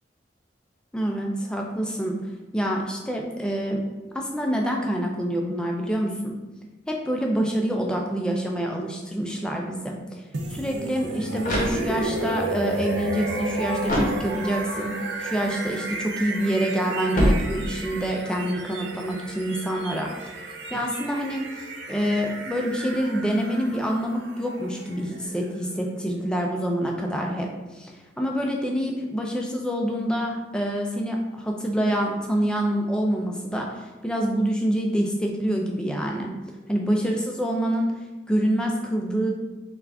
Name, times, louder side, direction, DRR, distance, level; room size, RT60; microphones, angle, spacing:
voice 1, 0.9-2.2 2.5-3.8 4.1-6.4 6.9-10.2 10.5-20.1 20.7-36.3 36.7-37.9 38.3-39.3, equal, 5° left, 0 dB, 0.3 m, -26 dB
sound 1, 10.3-26.2, right 2 dB, 60° right, 0.5 m, -33 dB
sound 2, 11.4-12.3 13.8-14.7 17.1-18.1, equal, 45° left, 0.8 m, -26 dB
3.4 x 2.4 x 3.3 m, 1.1 s
head